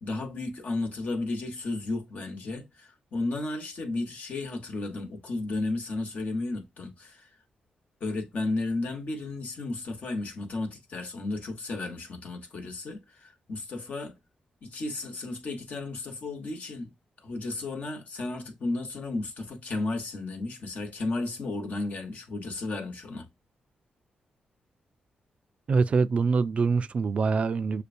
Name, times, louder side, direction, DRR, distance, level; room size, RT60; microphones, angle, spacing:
voice 1, 0.0-7.3 8.0-14.1 14.6-16.9 17.2-23.3, left 2 dB, 65° left, 1.2 m, -33 dB
voice 2, 25.7-27.8, right 4 dB, 50° right, 0.3 m, -24 dB
6.6 x 2.2 x 2.6 m
cardioid pair, 75°, 3 cm